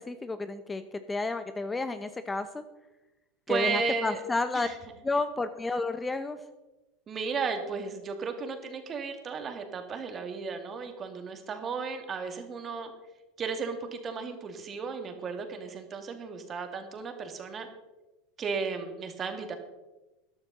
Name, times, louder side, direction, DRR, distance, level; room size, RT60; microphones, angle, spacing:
voice 1, 0.0-2.6 3.5-4.7 5.0-6.4, left 3 dB, 15° left, 11 dB, 0.8 m, -31 dB
voice 2, 3.5-4.2 4.5-4.7 7.1-12.9 13.4-17.7 18.4-19.6, right 5 dB, 35° right, 6 dB, 2.2 m, -34 dB
13.5 x 11.5 x 4.1 m, 1.1 s
hypercardioid pair, 85°, 0 cm